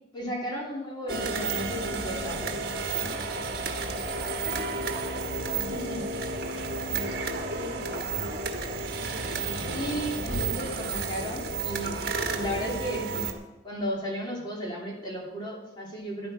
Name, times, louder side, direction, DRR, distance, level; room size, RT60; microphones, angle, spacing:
voice 1, 0.1-2.6 5.7-6.0 9.7-12.0 12.3-13.2 13.6-16.3, equal, 25° left, -3 dB, 2.8 m, -34 dB
sound 1, 1.1-13.3, right 3 dB, 55° right, 1.4 m, -31 dB
voice 2, 3.0-8.9, equal, 10° right, -3 dB, 1.9 m, -45 dB
13.0 x 11.0 x 5.1 m, 1.1 s
head